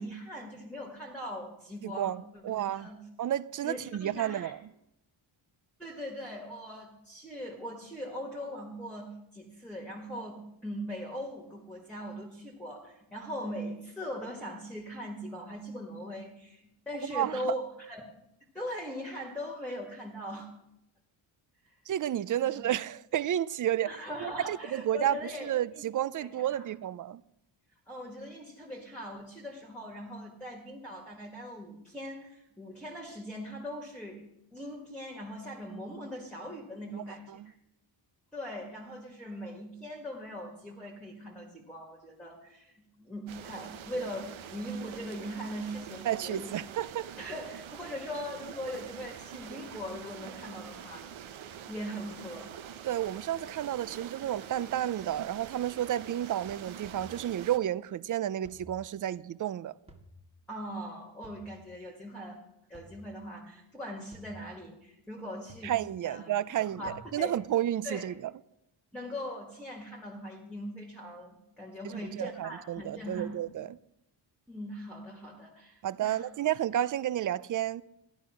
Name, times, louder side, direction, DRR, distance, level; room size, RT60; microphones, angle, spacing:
voice 1, 0.0-2.4 2.7-3.1 3.6-4.5 5.8-18.0 18.5-20.5 21.6-21.7 22.4-22.6 23.9-25.8 26.2-26.7 27.9-34.3 34.5-37.5 38.3-46.5 47.2-51.1 51.7-52.5 60.5-62.4 62.7-65.7 66.0-66.3 66.6-67.4 67.8-68.0 68.9-73.6 74.5-76.3, equal, ahead, 1.8 m, -40 dB
voice 2, 1.8-2.9 3.2-4.6 17.1-17.5 21.9-23.9 24.2-27.2 36.9-37.0 37.4-37.5 46.1-47.1 52.8-59.7 65.6-68.3 71.8-73.8 75.8-77.8, right 11 dB, 45° right, 0.4 m, -31 dB
sound 1, 43.3-57.6, right 8 dB, 80° right, 1.0 m, -45 dB
sound 2, 56.8-57.2 58.4-58.9 59.9-60.3 61.2-61.6 62.7-63.1 64.1-64.5 65.5-65.9 66.9-67.1, equal, 15° right, 1.5 m, -52 dB
14.0 x 11.5 x 5.8 m
wide cardioid pair, 170°, 47 cm